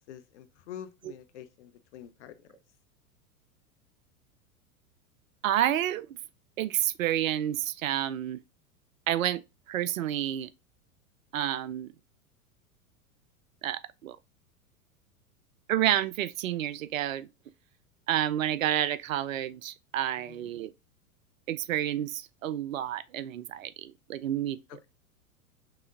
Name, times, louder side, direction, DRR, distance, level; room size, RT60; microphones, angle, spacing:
voice 1, 0.1-2.5 20.3-20.5 24.7-24.9, left 10 dB, 50° left, 0.7 m, -46 dB
voice 2, 5.4-6.2 6.6-8.4 9.1-9.4 9.7-10.5 11.3-11.9 13.6-14.2 15.7-17.3 18.1-20.7 21.5-24.6, right 12 dB, 60° right, 0.5 m, -29 dB
4.9 x 3.5 x 2.4 m
figure-of-eight pair, 90°, 45 cm